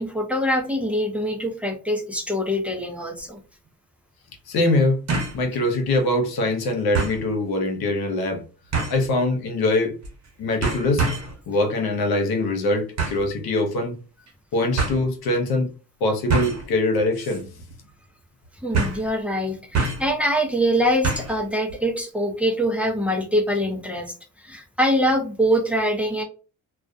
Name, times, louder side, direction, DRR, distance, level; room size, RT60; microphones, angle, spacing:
voice 1, 0.0-3.4 18.6-24.1 24.4-26.2, equal, 5° right, 0.6 m, -24 dB
sound 1, 3.2-3.3 5.1-5.4 5.9-6.0 6.9-7.2 8.7-9.1 10.0-10.3 10.6-11.4 13.0-13.3 14.3-14.4 14.8-15.0 16.3-16.7 17.1-17.4 17.7-17.8 18.7-19.1 19.7-20.1 21.0-21.4 21.7-21.8, right 4 dB, 45° right, 1.1 m, -25 dB
voice 2, 4.5-5.0 5.3-8.4 8.9-9.9 10.4-11.1 11.5-14.0 14.5-15.7 16.0-17.5, left 2 dB, 85° left, 0.8 m, -23 dB
2.3 x 2.1 x 2.5 m
cardioid pair, 80°, 36 cm